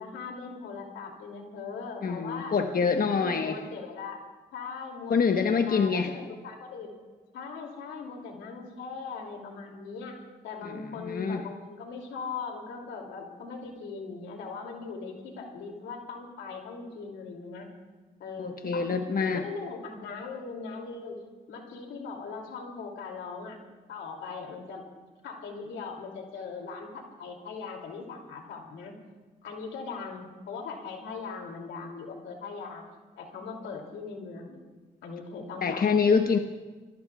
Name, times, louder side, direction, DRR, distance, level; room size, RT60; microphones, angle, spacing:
voice 1, 0.0-2.5 3.0-4.2 4.5-6.9 7.3-17.7 18.2-18.9 19.2-21.2 21.5-23.6 23.9-24.8 25.2-28.9 29.4-32.8 33.1-34.6 35.0-35.9, left 4 dB, 85° left, 1 dB, 2.9 m, -40 dB
voice 2, 2.0-3.6 5.1-6.2 10.6-11.4 18.4-19.4 35.6-36.4, left 5 dB, 50° left, 5 dB, 1.2 m, -26 dB
27.5 x 21.0 x 2.4 m, 1.3 s
supercardioid pair, 45°, 19 cm